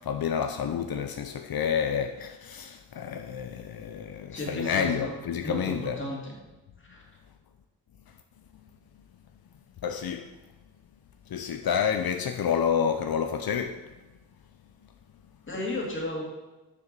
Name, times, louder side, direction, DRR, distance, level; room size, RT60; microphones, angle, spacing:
voice 1, 0.0-6.0 9.8-10.3 11.3-13.8, left 7 dB, 80° left, 6 dB, 0.7 m, -29 dB
voice 2, 4.3-5.2 5.4-6.3 6.8-7.0 15.5-16.2, left 1 dB, 35° left, -2 dB, 2.3 m, -34 dB
7.3 x 7.0 x 6.6 m, 1.1 s
wide cardioid pair, 175°, 35 cm